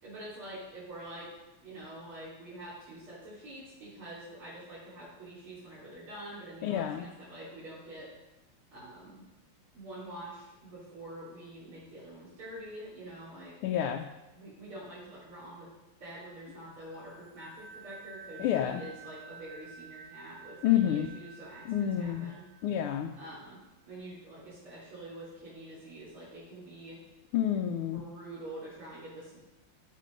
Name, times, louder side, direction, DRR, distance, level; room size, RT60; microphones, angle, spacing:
voice 1, 0.0-1.3 1.6-8.1 8.7-9.3 9.7-13.5 14.3-15.7 16.0-22.4 23.2-23.6 23.9-27.0 27.8-29.4, right 1 dB, 75° right, -11 dB, 4.2 m, -46 dB
voice 2, 6.6-7.1 13.6-14.1 18.4-18.8 20.6-21.1 21.7-22.3 22.6-23.1 27.3-28.0, left 10 dB, 85° left, 4 dB, 1.6 m, -28 dB
sound 1, 16.8-23.3, right 5 dB, 15° right, 4.3 m, -51 dB
15.0 x 6.4 x 5.3 m, 1.0 s
omnidirectional pair, 2.3 m